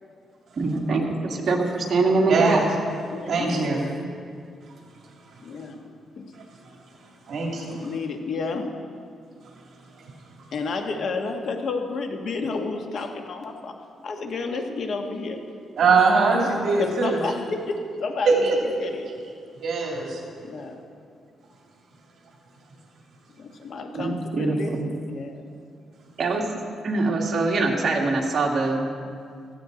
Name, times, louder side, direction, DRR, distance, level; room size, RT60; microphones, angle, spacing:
voice 1, 0.6-2.6 3.5-3.7 23.9-24.9 26.2-26.4 26.8-28.9, right 3 dB, 45° right, 0 dB, 2.1 m, -23 dB
voice 2, 2.3-2.6 3.3-3.8 7.3-7.7 15.8-17.2 18.3-18.5 19.6-20.2, right 4 dB, 60° right, -2 dB, 2.7 m, -21 dB
voice 3, 3.1-3.7 5.4-5.9 6.2-6.3 7.7-8.7 10.5-13.7 14.0-15.4 15.9-16.5 16.8-19.1 20.4-20.8 23.4-25.4, left 4 dB, 60° left, 4 dB, 1.5 m, -31 dB
16.5 x 14.0 x 4.0 m, 2.3 s
cardioid pair, 130°, 0 cm